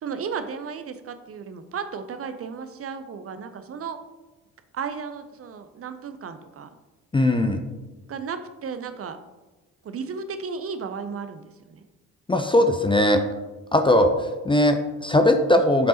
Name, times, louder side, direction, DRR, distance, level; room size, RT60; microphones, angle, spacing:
voice 1, 0.0-4.0 4.7-6.7 8.1-9.2 9.8-11.8, right 6 dB, 35° right, 9 dB, 0.6 m, -34 dB
voice 2, 7.1-7.6 12.3-13.2 13.7-15.9, left 1 dB, 10° left, 6 dB, 0.5 m, -19 dB
7.6 x 5.3 x 2.9 m, 1.2 s
figure-of-eight pair, 45°, 43 cm